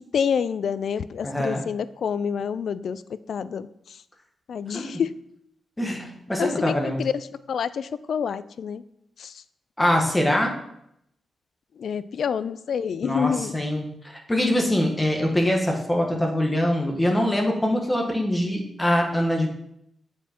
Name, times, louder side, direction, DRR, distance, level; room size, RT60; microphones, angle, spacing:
voice 1, 0.1-4.0 4.5-5.1 6.4-8.8 9.2-9.4 11.8-13.6, left 7 dB, 70° left, 16 dB, 0.3 m, -28 dB
voice 2, 1.2-1.6 4.7-4.9 5.8-7.0 9.8-10.5 13.0-19.5, left 1 dB, 15° left, 2 dB, 1.3 m, -23 dB
8.0 x 4.7 x 4.4 m, 0.75 s
cardioid pair, 105°, 0 cm